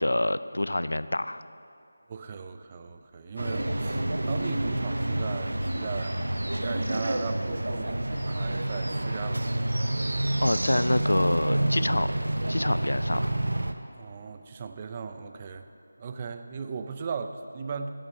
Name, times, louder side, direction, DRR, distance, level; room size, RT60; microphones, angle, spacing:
voice 1, 0.0-1.4 10.4-12.1 12.5-13.3, left 1 dB, 90° left, 14 dB, 0.4 m, -26 dB
voice 2, 2.1-9.8 14.0-15.7 16.0-17.9, right 5 dB, 25° right, 8 dB, 0.4 m, -38 dB
sound 1, 3.4-13.7, right 1 dB, 85° right, 0.7 m, -28 dB
10.5 x 6.2 x 6.6 m, 2.6 s
figure-of-eight pair, 170°, 0 cm